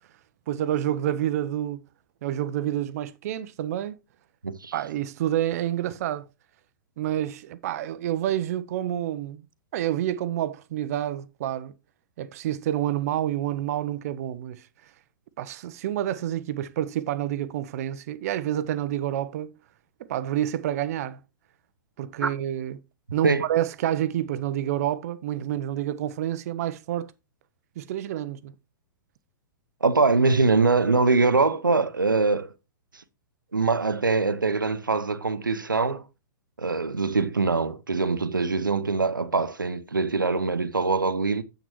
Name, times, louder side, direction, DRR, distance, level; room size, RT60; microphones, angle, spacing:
voice 1, 0.5-1.8 2.2-4.0 4.7-6.3 7.0-9.4 9.7-11.7 12.2-14.7 15.4-19.5 20.0-21.2 22.0-22.8 23.1-27.1 27.8-28.5, right 12 dB, 50° right, 0.8 m, -28 dB
voice 2, 29.8-32.5 33.5-36.0 36.6-41.4, right 4 dB, 85° right, 0.9 m, -23 dB
9.1 x 7.9 x 3.0 m
figure-of-eight pair, 110°, 11 cm